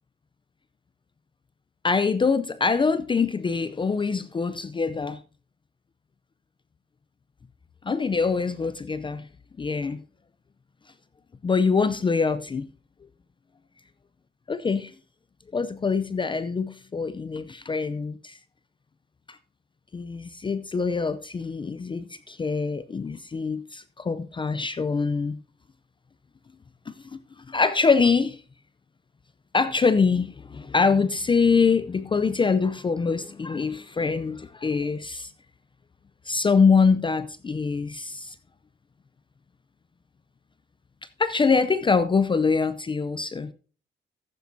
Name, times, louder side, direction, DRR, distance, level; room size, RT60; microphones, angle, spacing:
voice 1, 1.8-5.2 7.8-9.3 9.6-10.0 11.4-12.7 14.5-14.9 15.5-18.4 19.3-19.4 19.9-25.4 26.9-27.2 27.5-28.4 29.5-35.3 36.3-38.3 41.2-43.5, left 5 dB, 25° left, 0.5 m, -24 dB
15.0 x 8.3 x 2.7 m
cardioid pair, 90°, 20 cm